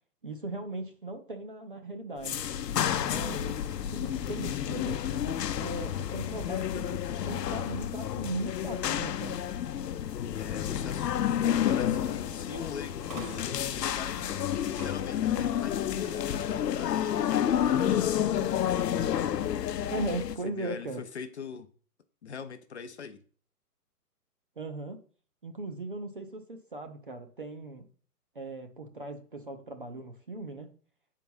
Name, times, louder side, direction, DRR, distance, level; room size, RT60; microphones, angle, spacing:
voice 1, 0.2-2.4 3.0-3.6 3.9-9.4 19.9-21.0 24.6-25.0 25.4-27.9 28.4-30.7, right 2 dB, 35° right, 0.5 m, -38 dB
sound 1, 2.2-20.4, left 10 dB, 90° left, 0.7 m, -30 dB
voice 2, 10.4-14.3 14.7-18.8 20.4-21.7 22.2-23.2, left 6 dB, 45° left, 0.6 m, -42 dB
sound 2, 10.4-16.2, right 3 dB, 80° right, 2.3 m, -52 dB
sound 3, 13.1-19.6, left 2 dB, 20° left, 0.8 m, -53 dB
6.9 x 4.6 x 5.3 m
hypercardioid pair, 175°, 47 cm